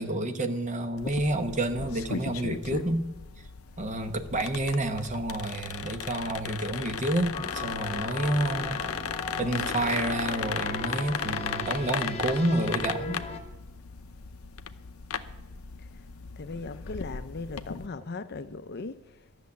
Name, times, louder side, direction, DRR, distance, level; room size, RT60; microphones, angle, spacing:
voice 1, 0.0-3.1 3.8-8.8 9.4-13.2, right 1 dB, 35° right, 1.1 m, -29 dB
sound 1, 1.0-17.9, left 6 dB, 85° left, 0.7 m, -36 dB
sound 2, 7.3-13.4, left 3 dB, 30° left, 1.1 m, -38 dB
voice 2, 16.4-19.0, left 3 dB, 50° left, 0.6 m, -38 dB
12.5 x 7.0 x 9.5 m
head